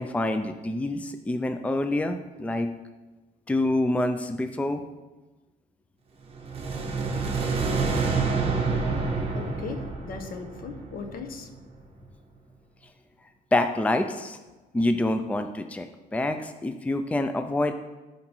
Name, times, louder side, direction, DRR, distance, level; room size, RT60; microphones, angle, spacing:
voice 1, 0.0-2.7 3.5-4.8 13.5-14.4 14.7-17.7, left 1 dB, 10° left, 8 dB, 0.5 m, -26 dB
sound 1, 6.3-11.5, right 4 dB, 35° right, 1.7 m, -28 dB
voice 2, 9.3-11.5, left 5 dB, 60° left, 6 dB, 1.2 m, -38 dB
12.5 x 5.2 x 4.5 m, 1.2 s
cardioid pair, 110°, 17 cm